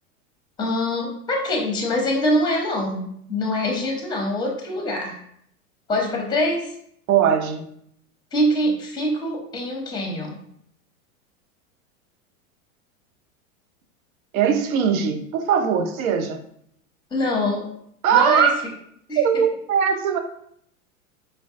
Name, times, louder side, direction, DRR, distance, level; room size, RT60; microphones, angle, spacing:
voice 1, 0.6-5.2 5.9-6.7 8.3-10.4 17.1-17.7 18.1-18.5 19.1-19.2, left 1 dB, 10° left, 2 dB, 0.6 m, -24 dB
voice 2, 7.1-7.6 14.3-16.4 18.0-18.5 19.2-20.2, right 8 dB, 75° right, 6 dB, 0.6 m, -20 dB
4.5 x 2.1 x 2.6 m, 0.70 s
hypercardioid pair, 110°, 43 cm